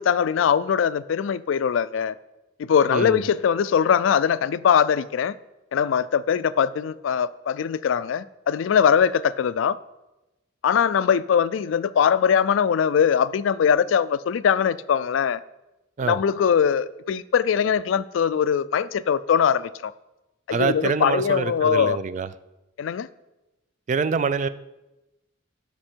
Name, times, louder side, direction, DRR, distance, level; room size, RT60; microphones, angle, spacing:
voice 1, 0.0-2.1 2.6-5.4 5.7-9.8 10.6-15.4 16.0-19.9 20.5-22.0 22.8-23.1, left 7 dB, 80° left, 0.3 m, -21 dB
voice 2, 2.9-3.2 16.0-16.2 20.5-22.3 23.9-24.5, right 5 dB, 40° right, 0.3 m, -25 dB
12.5 x 5.4 x 4.5 m
head